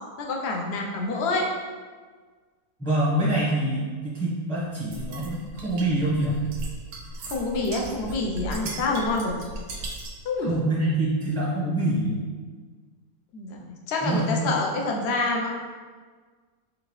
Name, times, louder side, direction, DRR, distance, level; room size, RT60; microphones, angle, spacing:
voice 1, 0.2-1.5 7.3-9.3 10.2-10.5 13.3-15.5, left 3 dB, 60° left, 0 dB, 0.7 m, -27 dB
voice 2, 2.8-6.3 8.6-8.8 10.4-12.2 14.0-14.5, right 1 dB, 5° left, -8 dB, 0.6 m, -25 dB
sound 1, 4.9-10.3, right 2 dB, 65° right, 0.9 m, -37 dB
3.8 x 3.6 x 3.1 m, 1.5 s
omnidirectional pair, 1.6 m